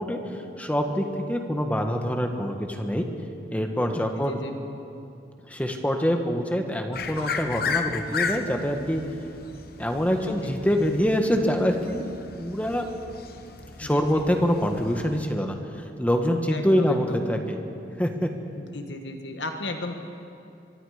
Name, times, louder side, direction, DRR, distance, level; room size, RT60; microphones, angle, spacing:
voice 1, 0.0-3.1 3.5-4.4 5.5-9.0 9.8-12.1 12.4-12.9 13.8-17.6 18.0-18.3, equal, 10° left, 4 dB, 1.5 m, -25 dB
voice 2, 4.0-4.5 10.0-10.5 13.8-14.2 16.5-17.2 18.6-20.0, left 2 dB, 70° left, 5 dB, 1.6 m, -36 dB
sound 1, 6.9-15.2, left 5 dB, 55° left, 1.1 m, -35 dB
24.0 x 23.0 x 5.1 m, 2.6 s
head